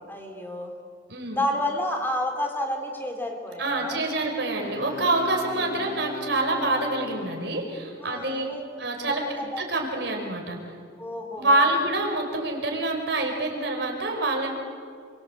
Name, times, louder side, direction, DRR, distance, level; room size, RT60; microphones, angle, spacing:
voice 1, 0.1-0.7 1.3-4.0 5.5-5.8 8.0-8.6 9.1-9.6 11.0-11.8, left 1 dB, 10° left, 3 dB, 3.6 m, -31 dB
voice 2, 1.1-1.4 3.6-8.4 8.8-10.5 11.4-14.5, right 2 dB, 70° right, 1 dB, 5.1 m, -26 dB
Wind instrument woodwind instrument, 4.6-7.7, left 4 dB, 50° left, 1.7 m, -38 dB
28.0 x 24.0 x 8.0 m, 2.2 s
head